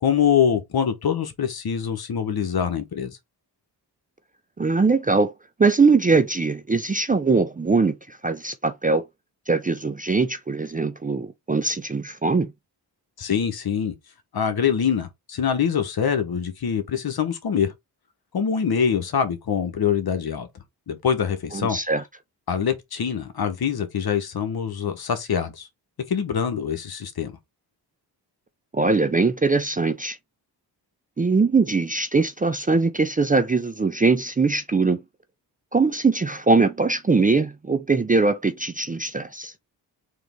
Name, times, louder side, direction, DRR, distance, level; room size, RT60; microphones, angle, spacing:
voice 1, 0.0-3.2 13.2-13.9 14.3-17.7 18.3-20.5 20.9-21.8 22.5-25.7 26.1-27.3, left 7 dB, 60° left, 1.1 m, -24 dB
voice 2, 4.6-5.3 5.6-9.1 9.5-12.5 21.5-22.0 28.7-30.2 31.2-35.0 35.7-39.5, right 4 dB, 20° right, 0.4 m, -21 dB
3.8 x 3.0 x 3.5 m
cardioid pair, 80°, 43 cm